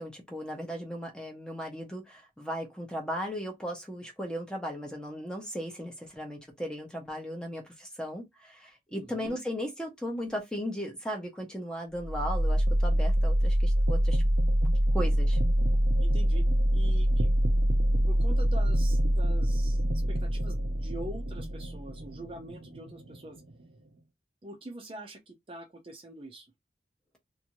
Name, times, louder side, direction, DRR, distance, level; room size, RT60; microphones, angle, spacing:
voice 1, 0.0-14.2 14.9-15.4, equal, 5° left, 0.7 m, -36 dB
voice 2, 8.9-9.4 16.0-16.4 16.7-17.3 18.0-19.8 20.1-23.4 24.4-26.5, right 1 dB, 30° right, 0.5 m, -44 dB
sound 1, 12.0-23.9, equal, 80° right, 0.6 m, -25 dB
2.6 x 2.5 x 2.9 m
head